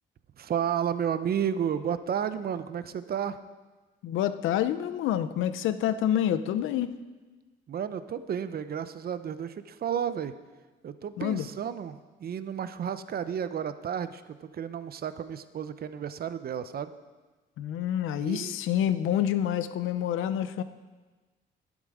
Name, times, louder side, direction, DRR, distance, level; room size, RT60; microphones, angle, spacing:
voice 1, 0.4-3.4 7.7-10.3 10.8-16.9 18.2-18.6, right 8 dB, 50° right, 12 dB, 0.7 m, -32 dB
voice 2, 4.0-7.0 11.2-11.5 17.6-20.6, left 10 dB, 85° left, 12 dB, 0.7 m, -27 dB
11.5 x 11.0 x 5.0 m, 1.3 s
cardioid pair, 90°, 20 cm